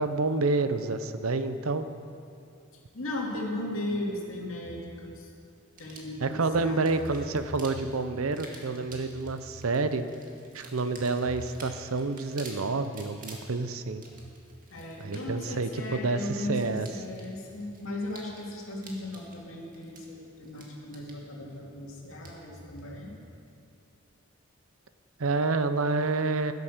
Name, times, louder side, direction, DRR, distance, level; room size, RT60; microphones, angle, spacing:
voice 1, 0.0-1.9 6.2-10.0 10.5-14.0 15.0-16.9 25.2-26.5, right 3 dB, 90° right, 11 dB, 0.7 m, -28 dB
voice 2, 2.9-5.3 5.8-7.1 14.7-23.2, left 1 dB, 70° left, -2 dB, 2.5 m, -37 dB
sound 1, 3.9-5.4 5.9-6.1 6.4-8.6 8.9-10.3 11.0-12.1 12.6-12.9 13.3-15.3 15.9-18.6 19.4-19.5 20.0-20.1 21.5-23.1, equal, 85° left, 1.9 m, -49 dB
sound 2, 5.7-22.9, right 3 dB, 45° right, 1.9 m, -51 dB
11.5 x 11.0 x 6.7 m, 2.5 s
head